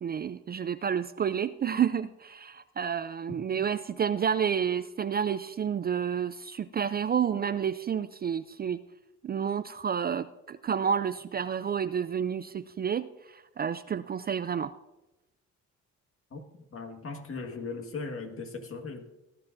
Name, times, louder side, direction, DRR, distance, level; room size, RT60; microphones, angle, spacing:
voice 1, 0.0-8.8 9.2-14.7, right 7 dB, 35° right, 14 dB, 0.4 m, -30 dB
voice 2, 16.7-19.1, left 4 dB, 45° left, 4 dB, 1.8 m, -38 dB
18.0 x 12.0 x 2.6 m, 0.97 s
cardioid pair, 90°, 30 cm